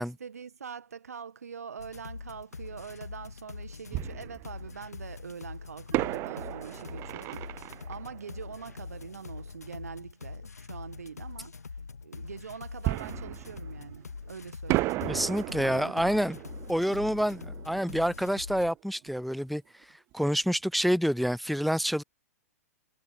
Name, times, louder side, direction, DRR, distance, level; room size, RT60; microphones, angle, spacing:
voice 1, 0.0-11.6 12.0-15.2 15.6-16.4, right 6 dB, 70° right, 1.7 m, -44 dB
sound 1, 1.8-18.7, left 4 dB, 75° left, 1.5 m, -43 dB
Fireworks, 2.6-2.7 3.9-5.0 5.9-9.4 12.8-14.3 14.7-19.2 19.5-19.6 20.1-20.3, right 20 dB, 30° right, 0.7 m, -35 dB
Bowed string instrument, 15.0-17.5, left 16 dB, 30° left, 7.7 m, -51 dB
voice 2, 15.1-16.4 16.7-19.6 20.1-22.0, equal, ahead, 0.4 m, -27 dB
figure-of-eight pair, 105°, 9 cm